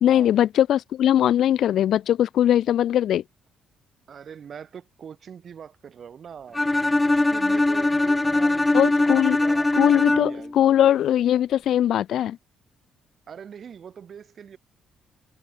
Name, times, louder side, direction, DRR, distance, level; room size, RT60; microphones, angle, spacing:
voice 1, 0.0-3.2 8.7-9.4 9.8-12.4, left 11 dB, 75° left, 0.4 m, -20 dB
voice 2, 4.1-6.6 6.9-10.9 13.3-14.6, right 7 dB, 55° right, 6.6 m, -42 dB
Bowed string instrument, 6.5-10.5, left 2 dB, 15° left, 1.8 m, -21 dB
cardioid pair, 90°, 0 cm